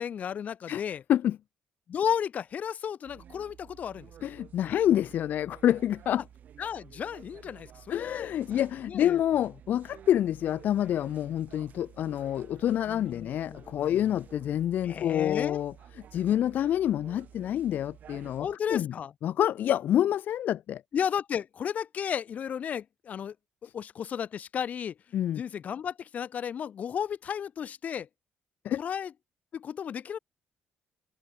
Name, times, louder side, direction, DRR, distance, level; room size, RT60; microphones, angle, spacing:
voice 1, 0.0-1.0 1.9-4.1 6.6-8.3 8.8-9.2 12.9-14.0 14.8-15.6 18.4-19.1 20.9-23.3 23.6-24.9 25.3-28.1 28.8-29.1 29.5-30.2, left 8 dB, 50° left, 6.6 m, -33 dB
sound 1, 3.0-18.5, right 9 dB, 60° right, 6.5 m, -52 dB
voice 2, 4.2-6.2 7.9-15.7 16.1-18.9 19.2-20.8 25.1-25.4 28.6-28.8, left 11 dB, 65° left, 2.4 m, -27 dB
cardioid pair, 120°, 3 cm